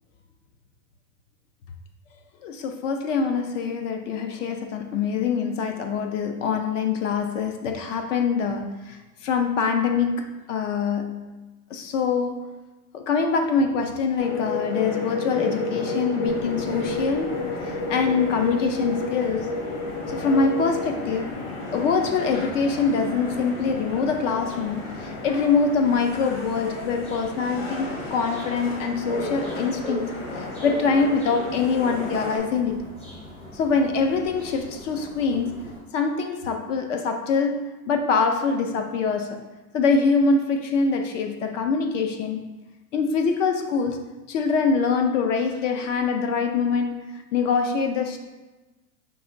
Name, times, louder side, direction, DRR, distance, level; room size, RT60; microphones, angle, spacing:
voice 1, 2.4-11.2 11.7-12.4 12.9-19.5 20.1-21.4 21.7-32.8 33.5-35.6 35.9-39.4 39.7-42.4 42.9-48.2, left 5 dB, 55° left, 6 dB, 0.5 m, -24 dB
sound 1, 14.2-32.4, left 2 dB, 40° left, 1.2 m, -32 dB
sound 2, 16.2-35.8, equal, 15° left, 0.6 m, -43 dB
5.3 x 2.9 x 2.5 m, 1.1 s
supercardioid pair, 150°, 44 cm